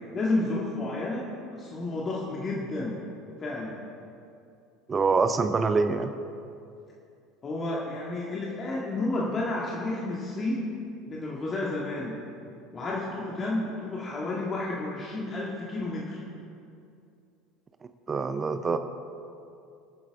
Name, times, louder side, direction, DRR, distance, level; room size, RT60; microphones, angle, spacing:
voice 1, 0.1-3.0 3.4-3.8 7.4-10.7 11.0-12.2 12.7-16.2, left 2 dB, 30° left, -4 dB, 2.0 m, -31 dB
voice 2, 4.9-6.1 18.1-18.8, right 4 dB, 25° right, 9 dB, 0.7 m, -25 dB
25.0 x 9.2 x 3.7 m, 2.6 s
figure-of-eight pair, 70°, 0 cm